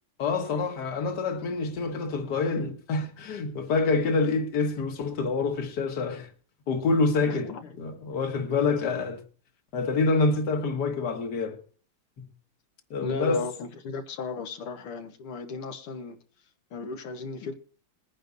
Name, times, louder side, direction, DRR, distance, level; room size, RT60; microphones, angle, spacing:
voice 1, 0.2-6.3 6.7-7.5 7.8-9.2 9.7-11.6 12.2-12.3 12.9-13.5, left 3 dB, 55° left, 1.9 m, -27 dB
voice 2, 7.3-7.8 8.7-9.0 13.0-16.2 16.7-17.5, left 4 dB, 80° left, 2.1 m, -36 dB
21.5 x 10.0 x 2.6 m
omnidirectional pair, 2.4 m